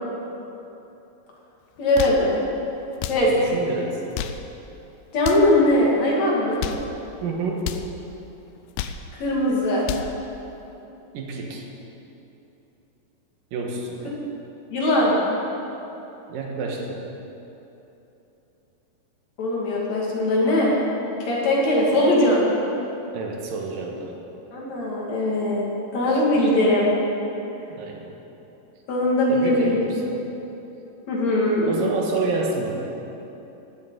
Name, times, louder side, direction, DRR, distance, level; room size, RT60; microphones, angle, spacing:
sound 1, 1.8-2.3 2.9-3.3 4.0-4.5 5.2-5.5 6.4-6.9 7.6-7.9 8.5-9.1 9.6-10.2, left 9 dB, 85° left, 2.3 m, -31 dB
voice 1, 1.8-2.3 3.1-3.3 5.1-6.6 9.1-9.8 14.7-15.1 19.4-20.7 21.2-22.4 24.5-26.9 28.9-29.8 31.1-31.9, left 1 dB, 55° left, -4 dB, 3.4 m, -20 dB
voice 2, 3.3-4.0 7.2-7.7 11.1-11.7 13.5-14.2 16.3-17.0 23.1-24.1 26.1-26.2 27.7-28.1 29.3-30.2 31.7-32.7, right 3 dB, 80° right, 0 dB, 3.1 m, -29 dB
16.0 x 12.5 x 4.0 m, 3.0 s
omnidirectional pair, 3.9 m